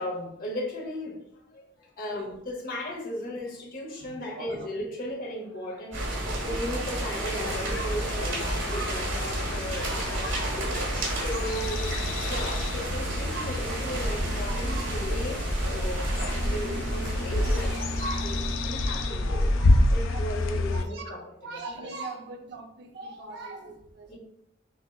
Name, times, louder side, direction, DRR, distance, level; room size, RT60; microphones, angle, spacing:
voice 1, 0.0-10.7 11.1-18.4 18.6-19.5 19.9-21.9 24.1-24.2, equal, 50° left, -2 dB, 0.9 m, -36 dB
voice 2, 4.0-4.7 6.1-7.9 8.4-9.0 9.8-10.6 11.1-11.6 12.5-12.6 13.3-13.6 14.5-14.9 16.2-16.3 16.7-16.8 17.8-18.3 19.2-21.2 21.4-24.2, right 2 dB, 60° right, 3 dB, 0.6 m, -41 dB
sound 1, 5.9-18.9, right 1 dB, 90° right, 1.5 m, -31 dB
sound 2, 7.5-20.8, left 2 dB, 90° left, 0.4 m, -29 dB
5.9 x 2.9 x 2.3 m, 0.76 s
head